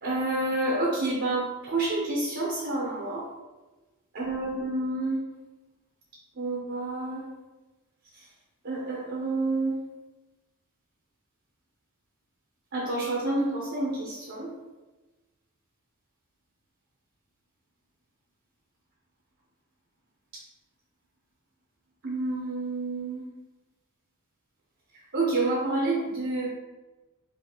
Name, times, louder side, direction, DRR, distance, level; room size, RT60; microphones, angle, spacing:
voice 1, 0.0-3.2 4.1-5.2 6.4-7.2 8.6-9.7 12.7-14.5 22.0-23.2 25.1-26.5, right 2 dB, 55° right, -5 dB, 0.9 m, -28 dB
5.4 x 2.8 x 3.0 m, 1.1 s
head